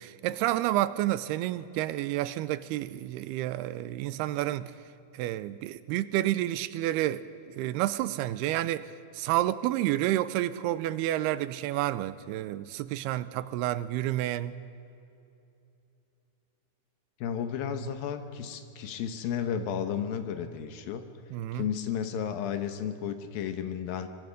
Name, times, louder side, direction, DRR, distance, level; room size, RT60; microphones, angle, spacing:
voice 1, 0.0-4.7 5.1-8.9 9.1-14.5 21.3-21.6, right 14 dB, 90° right, 15 dB, 2.6 m, -30 dB
voice 2, 17.2-21.0 21.5-24.1, left 8 dB, 70° left, 8 dB, 2.7 m, -33 dB
24.5 x 22.5 x 5.2 m, 2.8 s
omnidirectional pair, 4.5 m